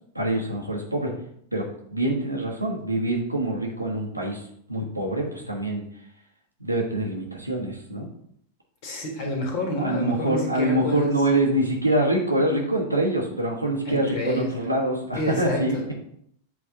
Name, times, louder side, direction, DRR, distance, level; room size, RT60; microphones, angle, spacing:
voice 1, 0.1-1.2 1.5-4.4 4.7-5.8 6.6-8.1 9.8-15.9, right 1 dB, 85° right, 0 dB, 1.2 m, -25 dB
voice 2, 8.8-11.1 13.8-14.6 15.1-15.9, left 1 dB, 50° left, 2 dB, 1.7 m, -29 dB
7.6 x 3.5 x 3.7 m, 0.69 s
figure-of-eight pair, 90°, 0 cm